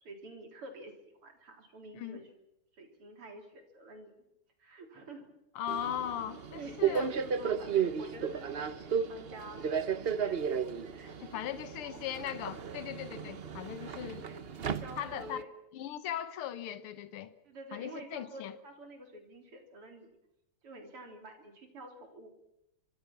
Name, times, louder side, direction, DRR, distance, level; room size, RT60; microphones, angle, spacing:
voice 1, 0.0-2.3 2.7-4.1 4.6-5.3 6.5-10.4 10.9-11.4 11.6-12.0 13.9-15.5 17.4-20.1 20.6-22.3, right 1 dB, 85° right, 4.7 m, -48 dB
voice 2, 5.6-7.1 11.2-14.3 15.0-15.4 15.7-17.3 17.7-18.6, left 10 dB, 75° left, 2.0 m, -39 dB
Subway metro underground, 5.7-15.4, right 7 dB, 60° right, 0.6 m, -34 dB
25.5 x 24.5 x 6.1 m
omnidirectional pair, 2.4 m